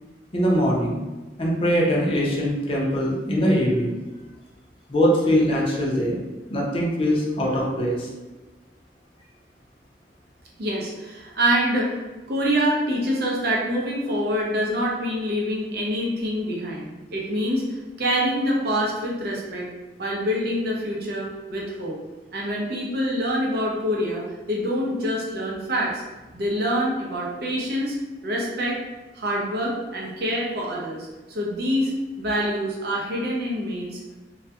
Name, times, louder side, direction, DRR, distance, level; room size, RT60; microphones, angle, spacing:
voice 1, 0.3-1.0 1.4-3.9 4.9-6.2 6.5-8.1, equal, 30° left, -3 dB, 0.5 m, -22 dB
voice 2, 10.6-12.0 12.3-19.7 20.0-22.0 22.3-24.2 24.5-26.0 26.3-28.0 28.2-28.8 29.1-34.0, equal, 60° right, -3 dB, 0.6 m, -25 dB
2.3 x 2.1 x 2.7 m, 1.2 s
head